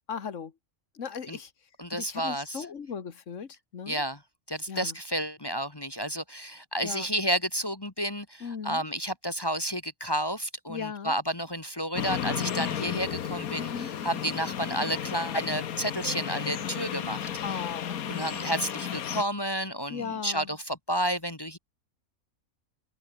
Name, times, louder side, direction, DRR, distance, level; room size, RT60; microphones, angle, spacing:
voice 1, 0.1-0.5 0.9-1.5 1.9-4.0 4.7-5.0 6.8-7.1 8.4-8.9 10.7-11.2 13.6-13.9 17.4-18.2 19.9-20.6, left 6 dB, 60° left, 1.9 m, -37 dB
voice 2, 1.8-2.6 3.9-4.2 4.5-17.3 18.1-21.6, equal, 20° left, 1.2 m, -31 dB
sound 1, 11.9-19.2, left 9 dB, 90° left, 1.5 m, -33 dB
omnidirectional pair, 1.5 m